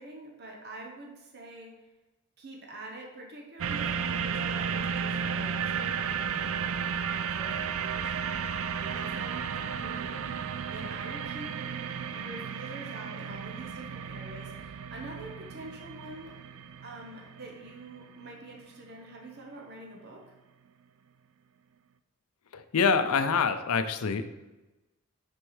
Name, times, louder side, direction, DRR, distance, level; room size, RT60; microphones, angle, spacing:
voice 1, 0.0-1.7 2.4-6.9 7.3-8.3 8.8-11.7 12.1-16.3 16.8-20.2, right 2 dB, 50° right, 0 dB, 1.0 m, -46 dB
sound 1, 3.6-18.3 18.9-19.0, right 7 dB, 65° right, 0.4 m, -34 dB
voice 2, 22.5-24.3, left 5 dB, 80° left, 10 dB, 0.5 m, -26 dB
6.3 x 4.5 x 4.8 m, 1.1 s
head